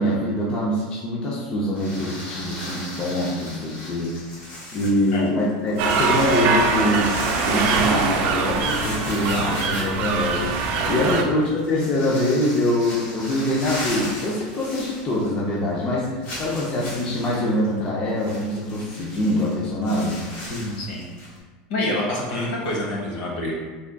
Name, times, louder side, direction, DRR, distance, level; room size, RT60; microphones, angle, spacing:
voice 1, 0.0-4.2 4.7-20.2, left 1 dB, 25° left, -5 dB, 0.5 m, -24 dB
sound 1, 1.7-15.5 15.8-15.9 16.2-21.4, left 1 dB, 45° left, 1.4 m, -37 dB
sound 2, 5.8-11.2, right 4 dB, 45° right, 0.4 m, -23 dB
voice 2, 10.9-11.4 20.5-21.1 21.7-23.5, left 1 dB, 65° left, -2 dB, 1.0 m, -27 dB
3.6 x 3.4 x 2.2 m, 1.3 s
supercardioid pair, 160°, 4 cm